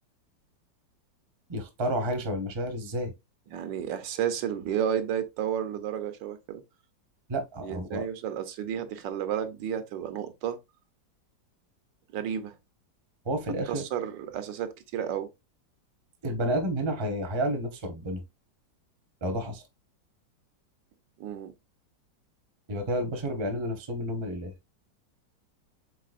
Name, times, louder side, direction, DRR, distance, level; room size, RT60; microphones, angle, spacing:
voice 1, 1.5-3.1 7.3-8.0 13.2-13.8 16.2-18.2 19.2-19.6 22.7-24.5, equal, 30° right, 0.5 m, -30 dB
voice 2, 3.5-6.6 7.6-10.6 12.1-12.5 13.7-15.3 21.2-21.5, right 9 dB, 90° right, 1.4 m, -32 dB
4.7 x 4.1 x 2.4 m
omnidirectional pair, 1.9 m